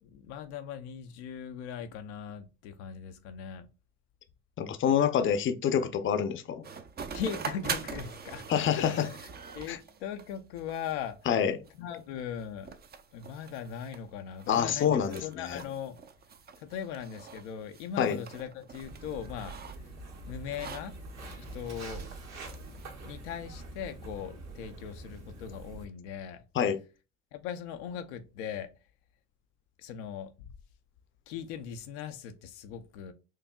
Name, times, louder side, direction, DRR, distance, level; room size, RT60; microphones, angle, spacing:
voice 1, 0.0-3.7 7.1-8.5 8.8-9.2 9.5-11.2 11.8-12.7 13.1-16.0 16.6-19.5 20.3-20.9 21.4-22.1 22.7-22.8 23.0-26.4 27.3-28.7 29.8-30.5 31.3-33.1, left 8 dB, 90° left, 0.5 m, -39 dB
voice 2, 4.6-6.6 8.5-8.9 9.7-9.8 11.3-11.6 14.5-15.6 18.0-18.2 26.5-26.8, left 8 dB, 35° left, 0.5 m, -27 dB
sound 1, 6.6-22.9, right 6 dB, 30° right, 0.5 m, -44 dB
Walk footsteps, 18.8-25.8, right 2 dB, 55° right, 1.3 m, -45 dB
4.6 x 2.6 x 2.2 m
supercardioid pair, 70°, 33 cm